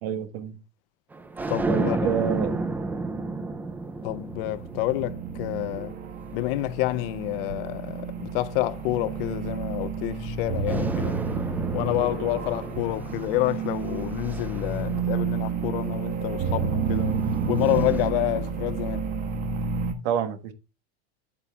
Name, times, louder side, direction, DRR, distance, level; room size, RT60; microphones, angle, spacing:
voice 1, 0.0-0.6 1.7-2.6 20.0-20.5, right 9 dB, 70° right, 1.4 m, -28 dB
sound 1, 1.1-7.7 8.4-10.3 10.6-16.0 17.0-18.1, right 3 dB, 5° right, 0.3 m, -33 dB
voice 2, 1.5-2.0 4.0-5.9 6.3-11.2 11.7-17.2 17.5-19.0, left 18 dB, 60° left, 0.6 m, -28 dB
sound 2, 4.2-19.9, right 6 dB, 25° right, 1.1 m, -30 dB
8.9 x 8.3 x 2.3 m
supercardioid pair, 155°, 33 cm